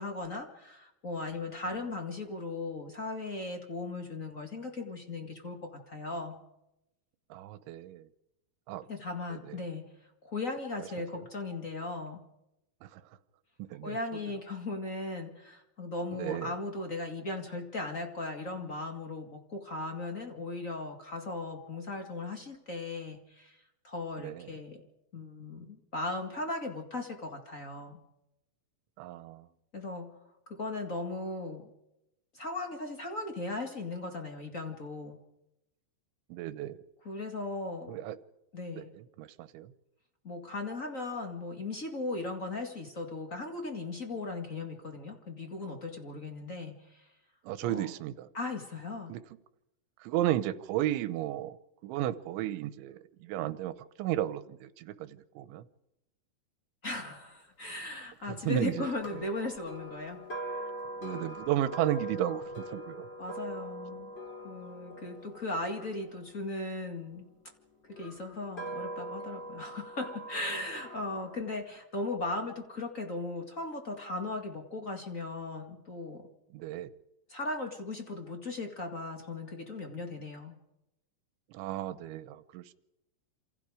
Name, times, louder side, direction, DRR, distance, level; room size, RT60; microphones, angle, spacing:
voice 1, 0.0-6.4 8.9-9.9 10.2-12.3 13.8-24.8 25.1-28.0 29.7-30.1 30.5-31.7 32.3-35.2 37.0-37.9 38.5-38.9 40.2-47.1 47.6-47.9 48.3-49.2 56.8-60.6 63.2-64.1 64.4-67.3 67.9-76.3 77.3-80.5, left 2 dB, 50° left, 3 dB, 0.9 m, -37 dB
voice 2, 7.3-8.1 8.7-8.9 9.3-9.6 11.1-11.3 12.8-13.0 13.6-14.0 16.2-16.5 24.2-24.5 29.0-29.5 36.3-36.8 37.9-38.2 38.8-39.7 47.4-48.3 49.1-49.2 50.0-51.6 51.8-55.7 58.2-58.9 61.0-63.1 76.5-76.9 81.5-82.7, right 13 dB, 85° right, 14 dB, 3.4 m, -34 dB
sound 1, 59.0-67.2 67.9-71.4, right 1 dB, 15° left, 3.0 m, -42 dB
28.0 x 27.5 x 5.0 m, 0.91 s
omnidirectional pair, 5.3 m